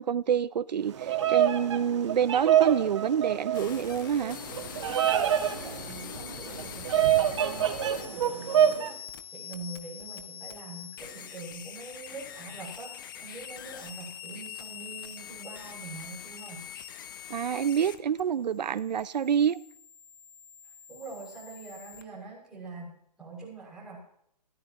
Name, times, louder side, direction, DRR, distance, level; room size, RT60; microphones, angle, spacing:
voice 1, 0.0-4.4 17.3-19.6, right 8 dB, 80° right, 0.7 m, -27 dB
Bird vocalization bird call bird song, 0.9-8.9, right 10 dB, 45° right, 1.5 m, -26 dB
sound 1, 3.5-22.0, left 9 dB, 30° left, 0.9 m, -44 dB
voice 2, 5.6-9.0 9.3-16.7 20.6-24.0, right 3 dB, 5° right, 6.7 m, -44 dB
21.5 x 14.0 x 3.1 m
hypercardioid pair, 170°, 21 cm